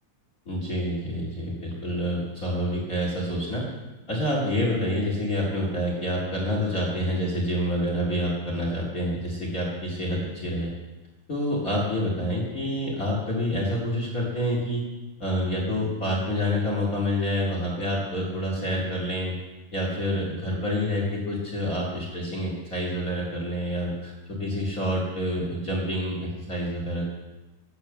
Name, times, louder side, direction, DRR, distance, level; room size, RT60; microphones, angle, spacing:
voice 1, 0.5-3.6 4.1-10.7 11.3-14.8 15.2-19.3 19.7-24.1 24.4-27.1, equal, 30° left, -3 dB, 2.2 m, -27 dB
11.5 x 8.0 x 7.1 m, 1.1 s
omnidirectional pair, 3.5 m